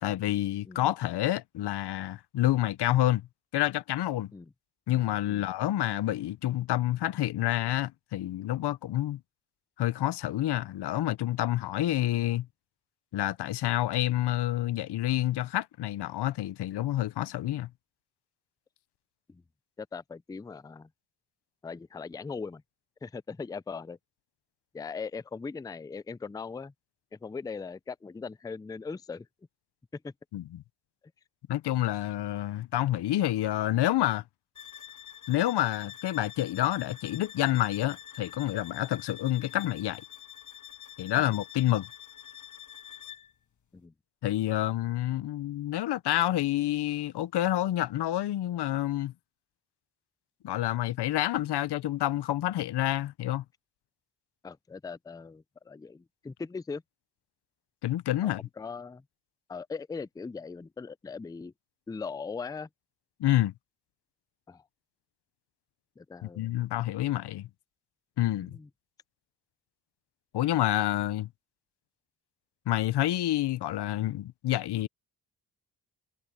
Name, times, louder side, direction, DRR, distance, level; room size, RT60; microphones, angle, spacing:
voice 1, 0.0-3.3 3.5-4.3 4.9-9.2 9.8-12.5 13.1-17.7 30.3-30.6 31.5-34.2 35.3-40.0 41.0-41.9 44.2-49.1 50.4-53.4 57.8-58.4 63.2-63.5 66.2-67.5 68.2-68.6 70.3-71.3 72.7-74.9, left 14 dB, 85° left, 0.7 m, -28 dB
voice 2, 19.8-20.9 21.6-22.6 23.0-24.0 24.7-26.7 27.1-29.3 29.9-30.1 43.7-43.9 54.4-56.8 58.6-59.0 59.5-61.5 61.9-62.7 64.5-64.6 66.0-66.5 68.4-68.7, left 5 dB, 10° left, 0.4 m, -39 dB
sound 1, 34.6-43.4, left 10 dB, 45° left, 1.5 m, -47 dB
cardioid pair, 75°, 39 cm